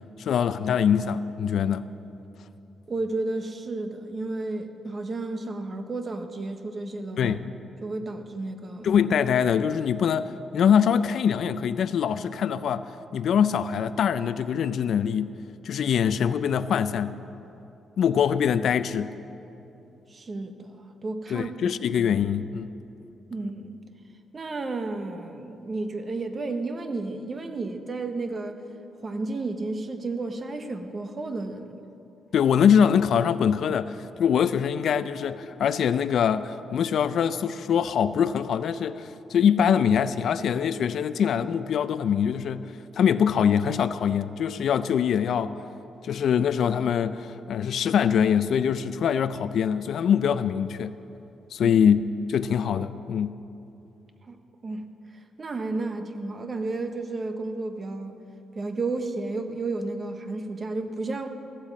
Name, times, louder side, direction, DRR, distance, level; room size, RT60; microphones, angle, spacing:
voice 1, 0.2-1.9 7.2-7.4 8.8-15.3 15.6-17.2 18.0-19.1 21.3-22.7 32.3-42.6 43.0-45.5 46.0-50.9 51.5-52.0 52.3-53.3, left 8 dB, 55° left, 0.3 m, -23 dB
voice 2, 2.9-7.4 7.8-8.9 20.1-20.8 21.0-21.5 23.3-23.8 24.3-28.6 29.0-31.8 51.6-51.7 54.3-54.4 54.6-54.9 55.4-58.2 58.5-61.3, right 3 dB, 25° right, 0.8 m, -32 dB
14.5 x 9.0 x 7.4 m
cardioid pair, 170°, 0 cm